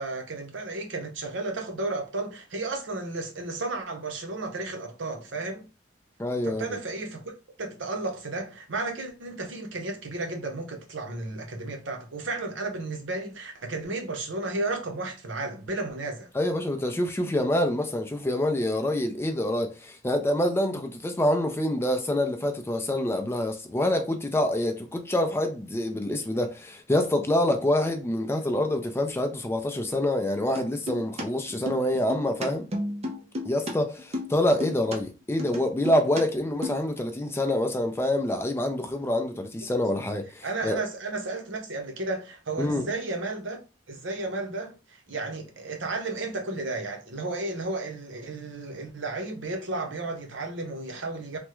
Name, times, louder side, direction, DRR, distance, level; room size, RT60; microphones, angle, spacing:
voice 1, 0.0-5.6 6.4-7.3 7.6-16.3 40.4-43.6 43.9-51.4, right 2 dB, 70° right, 0.7 m, -33 dB
voice 2, 6.2-6.8 16.4-32.6 33.5-40.8 42.6-42.9, left 1 dB, 15° left, 0.4 m, -26 dB
sound 1, 30.5-31.2 31.5-33.7 34.0-35.0 35.4-36.2 36.5-36.9, left 1 dB, 35° right, 0.7 m, -33 dB
3.4 x 2.1 x 3.0 m
head